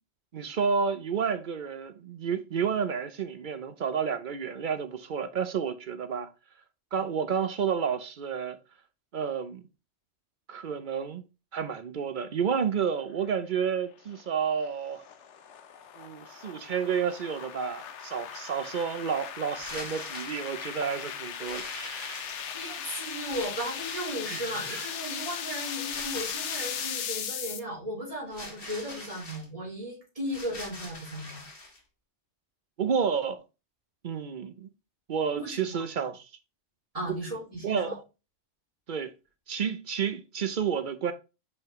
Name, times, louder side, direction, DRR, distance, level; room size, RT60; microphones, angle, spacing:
voice 1, 0.3-6.3 6.9-8.6 9.1-9.6 10.5-11.2 11.5-15.0 16.0-22.3 24.3-24.9 32.8-33.4 34.0-34.7 35.1-36.3 37.1-37.2 37.6-38.0 38.9-39.1 39.5-41.1, right 7 dB, 55° right, 0.7 m, -30 dB
sound 1, 13.7-27.6, left 8 dB, 85° left, 1.0 m, -38 dB
sound 2, 19.5-20.5 21.4-22.7 23.3-24.3 25.9-27.1 28.3-29.4 30.3-31.8, left 2 dB, 55° left, 1.9 m, -43 dB
voice 2, 22.5-31.4 35.4-35.8 36.9-37.9, equal, 30° right, 3.1 m, -36 dB
5.7 x 5.5 x 3.0 m
omnidirectional pair, 1.2 m